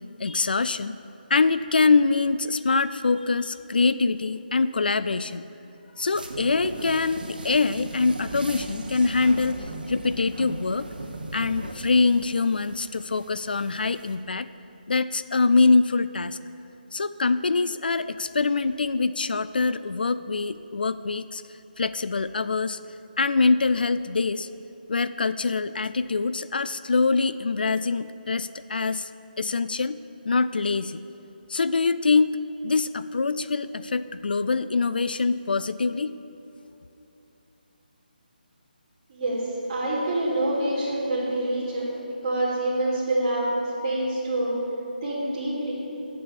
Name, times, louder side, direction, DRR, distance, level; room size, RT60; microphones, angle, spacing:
voice 1, 0.2-0.9 1.3-5.5 6.0-10.9 11.3-14.5 14.9-16.4 16.9-21.4 21.8-22.8 23.2-24.5 24.9-29.1 29.4-30.0 30.3-31.0 31.5-36.1, left 4 dB, 65° left, 14 dB, 0.4 m, -24 dB
sound 1, 6.1-14.1, right 2 dB, 65° right, 1.3 m, -38 dB
voice 2, 39.1-41.9 42.2-43.6 43.8-44.6 45.0-45.8, right 1 dB, 25° right, -9 dB, 2.9 m, -26 dB
8.7 x 7.6 x 8.5 m, 2.9 s
hypercardioid pair, 175°, 5 cm